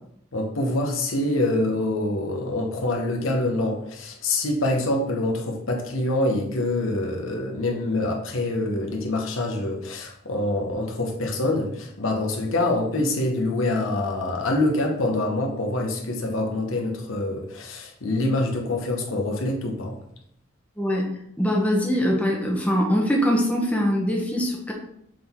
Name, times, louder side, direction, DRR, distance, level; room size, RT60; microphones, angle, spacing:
voice 1, 0.3-20.0, left 2 dB, 90° left, 1 dB, 1.1 m, -25 dB
voice 2, 20.8-21.1 21.4-24.7, equal, 5° left, -1 dB, 1.0 m, -22 dB
6.7 x 3.9 x 3.6 m, 0.72 s
head